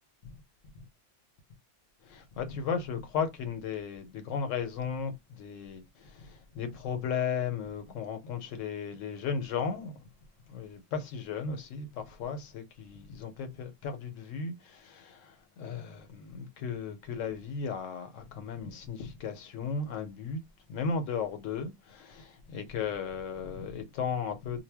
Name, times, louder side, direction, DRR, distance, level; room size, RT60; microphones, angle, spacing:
voice 1, 2.0-10.1 10.5-20.4 20.7-24.6, left 6 dB, 90° left, 1.0 m, -35 dB
2.2 x 2.1 x 3.3 m
omnidirectional pair, 1.3 m